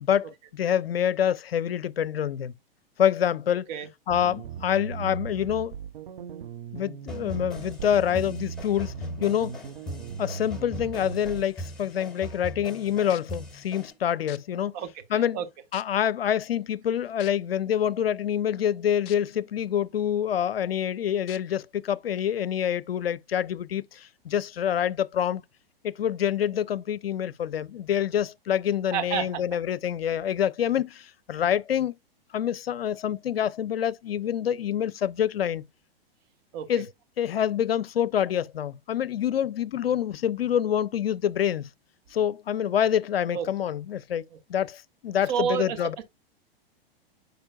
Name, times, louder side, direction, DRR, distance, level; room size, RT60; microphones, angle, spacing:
voice 1, 0.0-2.5 3.0-3.7 4.1-5.7 6.7-8.9 9.2-9.6 10.2-14.8 15.1-15.4 15.7-25.4 25.8-31.9 32.3-35.6 36.7-36.9 37.2-41.7 42.1-44.2 44.5-46.0, left 9 dB, 75° left, 0.5 m, -26 dB
sound 1, 4.1-11.5, right 7 dB, 65° right, 0.7 m, -38 dB
sound 2, 7.1-13.9, equal, ahead, 4.6 m, -40 dB
sound 3, 12.7-12.8 13.1-13.4 14.3-14.4 15.1-15.2 15.7-16.1 17.2-17.3 19.1-19.2 19.7-19.8 21.3-21.4 22.2-22.3, left 15 dB, 30° left, 0.5 m, -44 dB
voice 2, 14.7-15.5 28.9-29.4 36.5-36.7 43.3-43.5 45.3-45.8, right 8 dB, 45° right, 1.4 m, -29 dB
8.7 x 5.2 x 2.3 m
figure-of-eight pair, 105°, 30 cm